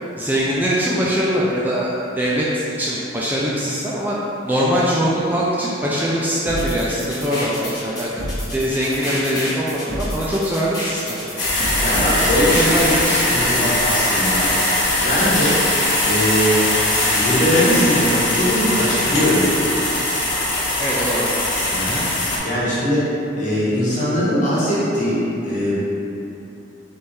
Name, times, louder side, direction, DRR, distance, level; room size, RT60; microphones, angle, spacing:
voice 1, 0.2-4.2 4.4-8.1 8.5-11.3 12.3-13.4 20.8-21.7, equal, 10° right, -6 dB, 0.3 m, -22 dB
sound 1, 6.5-13.3, left 1 dB, 20° left, 1.0 m, -28 dB
sound 2, 11.4-22.4, left 1 dB, 80° left, 1.0 m, -20 dB
voice 2, 11.8-12.7 13.3-14.5 15.0-15.6 16.0-16.7 17.1-19.8 21.7-22.1 22.4-25.8, equal, 40° left, -9 dB, 1.2 m, -21 dB
4.3 x 3.4 x 3.2 m, 2.9 s
head